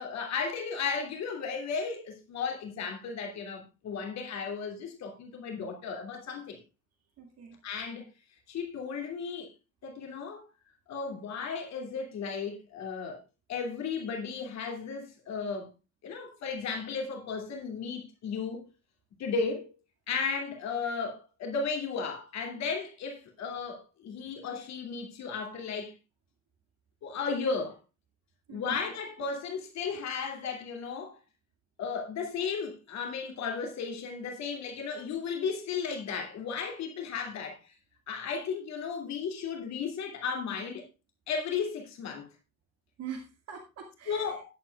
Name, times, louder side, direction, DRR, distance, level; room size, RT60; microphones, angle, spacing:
voice 1, 0.0-6.6 7.6-8.1 8.5-9.5 9.8-10.5 10.9-13.2 13.5-15.7 16.0-18.7 19.2-19.7 20.1-25.9 27.0-27.8 28.5-31.2 31.8-37.6 38.1-40.8 41.3-42.3 44.1-44.5, left 5 dB, 40° left, 2.7 m, -34 dB
voice 2, 7.2-7.6 28.5-28.8 43.0-44.4, right 7 dB, 35° right, 2.1 m, -43 dB
15.0 x 10.0 x 2.4 m
figure-of-eight pair, 65°, 42 cm